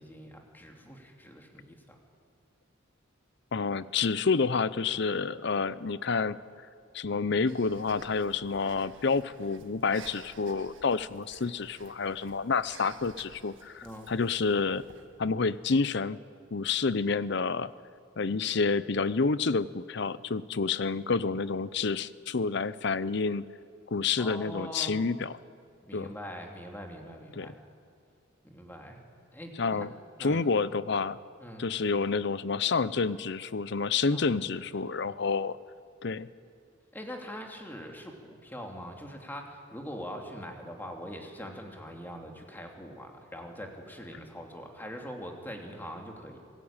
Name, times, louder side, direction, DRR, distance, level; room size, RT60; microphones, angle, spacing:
voice 1, 0.0-2.0 13.8-14.1 24.2-25.0 25.8-27.6 28.4-29.0 29.3-29.9 30.2-30.4 31.4-31.7 34.1-34.9 36.9-46.4, equal, 10° left, 2 dB, 2.7 m, -43 dB
voice 2, 3.5-6.4 6.9-14.8 15.2-16.2 16.5-17.7 18.2-23.4 23.9-25.3 25.9-26.1 27.4-27.5 29.6-29.9 30.2-31.2 31.6-35.6 36.0-36.3, left 4 dB, 60° left, 17 dB, 0.7 m, -29 dB
Breathing, 7.5-15.1, right 5 dB, 75° right, 1.6 m, -53 dB
26.0 x 16.0 x 8.9 m, 2.3 s
head